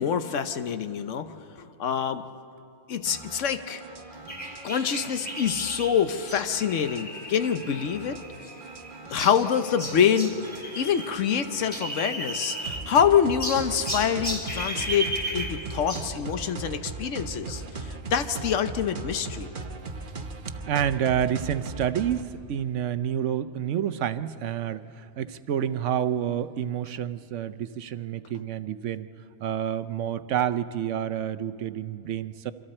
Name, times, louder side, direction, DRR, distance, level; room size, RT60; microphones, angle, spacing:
voice 1, 0.0-1.3 1.6-2.2 2.9-3.8 4.6-8.2 9.1-10.4 10.8-19.5, left 8 dB, 85° left, 9 dB, 1.2 m, -26 dB
sound 1, 3.1-22.3, right 3 dB, 45° right, 1.2 m, -39 dB
sound 2, 4.3-11.1 11.4-13.0 13.4-16.1, right 1 dB, 5° left, 3.1 m, -35 dB
voice 2, 20.7-29.1 29.4-32.5, right 9 dB, 80° right, 12 dB, 1.0 m, -28 dB
27.0 x 25.5 x 4.4 m, 2.6 s
omnidirectional pair, 1.2 m